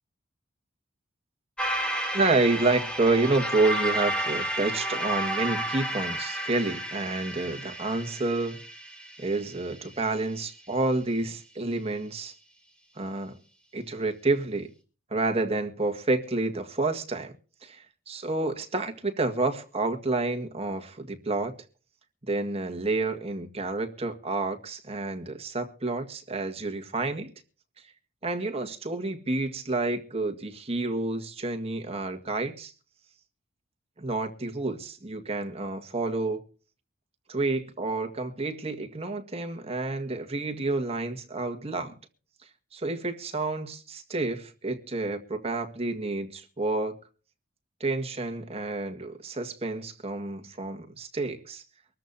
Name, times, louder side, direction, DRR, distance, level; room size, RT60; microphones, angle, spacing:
sound 1, 1.6-10.0, right 1 dB, 5° left, 3.0 m, -32 dB
voice 1, 2.1-8.6 9.2-12.3 13.0-13.4 13.7-14.7 15.1-17.3 17.6-21.5 22.3-27.3 28.2-32.7 34.0-36.4 37.3-41.9 42.7-47.0 47.8-51.6, right 2 dB, 30° right, 1.7 m, -29 dB
24.5 x 13.5 x 2.7 m
head